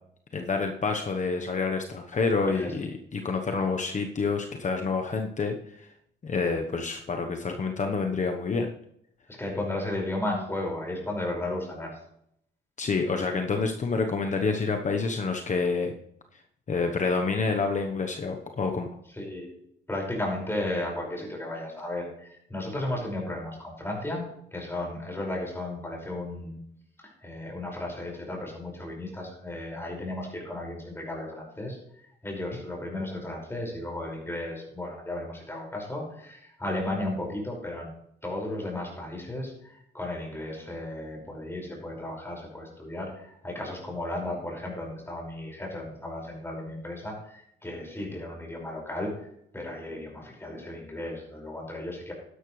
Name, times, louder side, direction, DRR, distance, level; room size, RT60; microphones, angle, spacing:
voice 1, 0.3-5.9 6.2-8.7 12.8-15.9 16.7-18.9, left 4 dB, 40° left, 4 dB, 1.1 m, -28 dB
voice 2, 9.3-12.0 19.1-19.5 19.9-24.2 24.5-26.6 27.0-31.8 32.2-37.9 38.2-52.1, left 1 dB, 10° left, -1 dB, 5.5 m, -34 dB
12.0 x 11.0 x 3.2 m, 0.72 s
cardioid pair, 90°, 20 cm